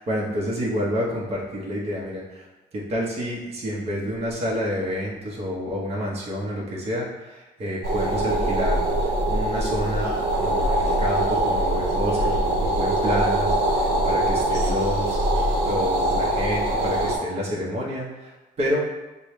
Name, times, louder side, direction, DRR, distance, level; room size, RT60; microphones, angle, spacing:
voice 1, 0.0-2.5 2.7-15.2 15.7-18.8, equal, 35° right, -5 dB, 1.0 m, -29 dB
sound 1, 7.8-17.2, right 1 dB, 85° right, 0.9 m, -23 dB
6.6 x 2.3 x 3.2 m, 1.1 s
cardioid pair, 110°, 17 cm